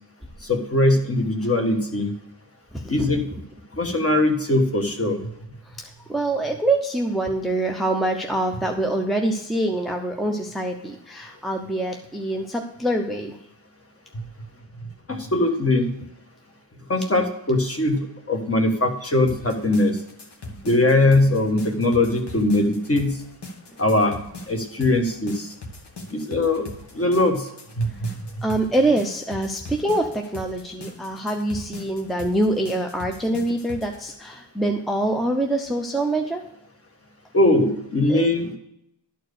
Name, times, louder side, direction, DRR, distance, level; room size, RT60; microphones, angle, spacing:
voice 1, 0.5-2.1 2.9-3.2 3.8-5.2 15.1-15.9 16.9-20.0 20.6-23.2 23.8-24.1 24.5-25.5 26.1-26.7 26.9-27.4 27.8-28.1 37.3-38.6, left 2 dB, 30° left, 3 dB, 1.4 m, -21 dB
voice 2, 2.7-3.1 5.8-13.4 28.4-36.4 38.1-38.3, right 1 dB, ahead, 3 dB, 0.6 m, -25 dB
sound 1, 19.3-34.0, left 2 dB, 60° left, 1.5 m, -40 dB
12.0 x 4.6 x 6.6 m, 0.78 s
wide cardioid pair, 150°, 45 cm